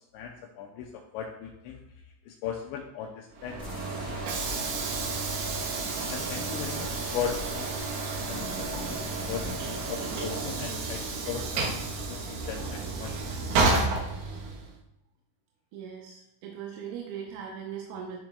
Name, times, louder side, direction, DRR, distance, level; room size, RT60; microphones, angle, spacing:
voice 1, 0.1-1.8 2.3-3.7 5.9-7.7 8.3-11.8 12.1-13.7, left 8 dB, 85° left, 2 dB, 2.6 m, -38 dB
Train / Sliding door, 3.3-14.8, right 3 dB, 70° right, 2.4 m, -31 dB
sound 1, 3.6-11.2, left 1 dB, 35° left, 2.7 m, -45 dB
voice 2, 15.7-18.2, right 8 dB, 90° right, 0 dB, 3.5 m, -39 dB
11.5 x 6.0 x 2.3 m, 0.90 s
omnidirectional pair, 5.7 m